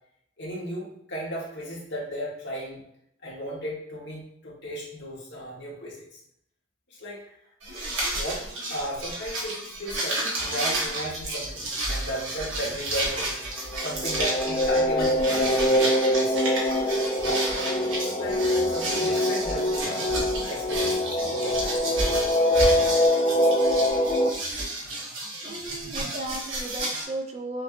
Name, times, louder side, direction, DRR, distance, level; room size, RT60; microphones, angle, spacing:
voice 1, 0.4-2.8 3.2-6.1 7.0-7.2 8.1-13.4 13.8-16.5 17.2-17.6 17.9-18.4 18.7-21.8 25.5-25.6 26.0-26.2, equal, 60° left, -4 dB, 1.4 m, -35 dB
sound 1, 7.6-27.0, right 1 dB, 70° right, 1.3 m, -31 dB
sound 2, 13.6-24.3, left 1 dB, 30° left, 0.4 m, -24 dB
voice 2, 25.4-27.6, right 2 dB, 35° right, 2 dB, 0.6 m, -35 dB
6.3 x 2.4 x 2.6 m, 0.73 s
head